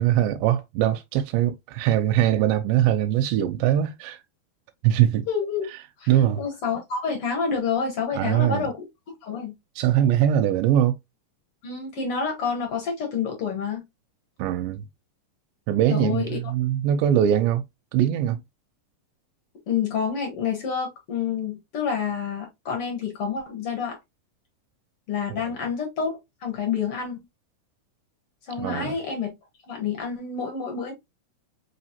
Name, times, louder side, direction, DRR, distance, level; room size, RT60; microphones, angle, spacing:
voice 1, 0.0-4.2 4.8-5.3 6.1-6.4 8.1-8.7 9.8-11.0 14.4-14.8 15.7-17.6 17.9-18.4 25.3-25.5 28.6-29.0, right 11 dB, 90° right, 2.3 m, -22 dB
voice 2, 5.3-5.7 6.0-6.1 6.4-8.9 9.2-9.5 11.6-13.8 15.9-16.3 19.7-24.0 25.1-27.2 28.5-29.3 29.7-30.9, left 6 dB, 60° left, 1.6 m, -28 dB
4.9 x 3.1 x 2.7 m
omnidirectional pair, 3.9 m